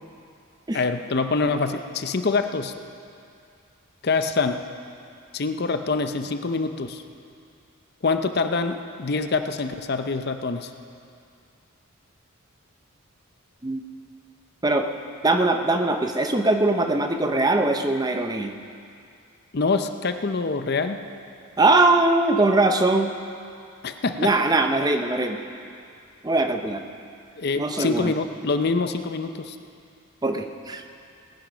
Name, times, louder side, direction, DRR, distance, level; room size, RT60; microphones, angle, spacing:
voice 1, 0.7-2.7 4.0-4.6 5.3-7.0 8.0-10.7 19.5-21.0 23.8-24.3 27.4-29.6, left 4 dB, 50° left, 8 dB, 0.6 m, -25 dB
voice 2, 15.2-18.5 21.6-23.1 24.2-25.4 26.2-26.8 27.6-28.1 30.2-30.8, right 2 dB, 20° right, 5 dB, 0.6 m, -21 dB
18.5 x 10.5 x 5.1 m, 2.4 s
head